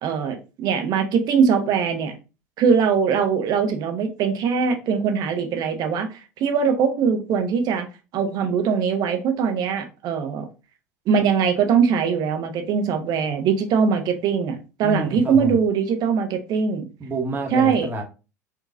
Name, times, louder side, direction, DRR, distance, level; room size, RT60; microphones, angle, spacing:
voice 1, 0.0-2.1 2.6-7.9 8.1-10.5 11.1-16.9 17.5-17.9, right 6 dB, 50° right, 5 dB, 0.9 m, -21 dB
voice 2, 14.8-15.6 17.0-18.0, right 1 dB, 20° right, 2 dB, 1.3 m, -28 dB
5.0 x 2.9 x 2.5 m, 0.31 s
figure-of-eight pair, 70°, 9 cm